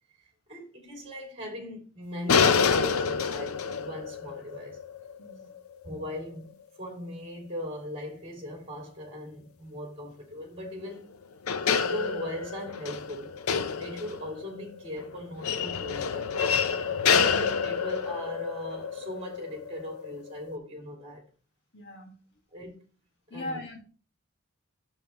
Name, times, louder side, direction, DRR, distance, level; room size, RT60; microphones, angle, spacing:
voice 1, 0.5-4.8 5.8-6.5 6.8-11.1 11.8-13.4 13.7-16.6 17.1-21.2 22.5-22.8 23.3-23.6, equal, 30° right, 2.8 m, -39 dB
sound 1, 2.3-6.2 11.0-11.1 11.4-20.5, left 6 dB, 90° left, 0.6 m, -28 dB
voice 2, 5.2-5.5 21.7-22.2 23.3-23.8, left 1 dB, 55° left, 1.9 m, -39 dB
7.7 x 6.9 x 3.0 m
head